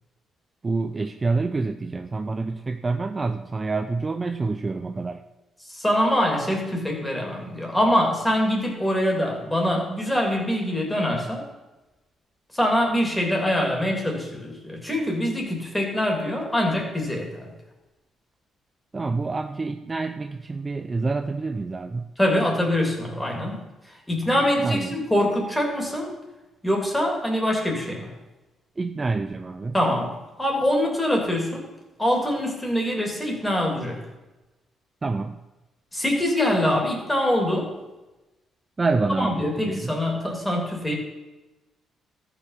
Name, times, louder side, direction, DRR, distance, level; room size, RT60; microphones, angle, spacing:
voice 1, 0.6-5.2 18.9-22.1 24.3-25.0 28.8-29.7 35.0-35.4 38.8-40.0, right 3 dB, 25° right, 8 dB, 0.5 m, -27 dB
voice 2, 5.6-11.5 12.5-17.5 22.2-26.1 26.6-28.1 29.7-31.7 32.0-34.0 35.9-37.7 39.1-41.0, left 1 dB, 10° left, 0 dB, 3.0 m, -24 dB
13.5 x 6.0 x 5.8 m, 1.1 s
cardioid pair, 90°, 0 cm